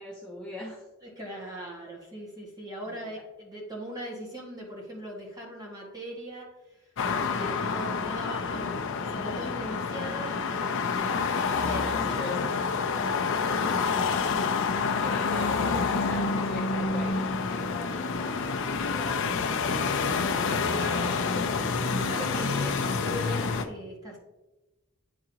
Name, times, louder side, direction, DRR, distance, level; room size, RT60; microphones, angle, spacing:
voice 1, 0.0-0.8 1.5-1.6 2.9-3.1 11.8-12.4 15.0-20.0, left 2 dB, 5° left, -7 dB, 1.2 m, -41 dB
voice 2, 1.0-10.9 11.5-12.5 12.9-14.4 20.3-24.2, right 1 dB, 20° right, -3 dB, 1.8 m, -40 dB
sound 1, 7.0-23.7, left 4 dB, 65° left, 0.6 m, -28 dB
10.5 x 3.7 x 2.9 m, 1.0 s
head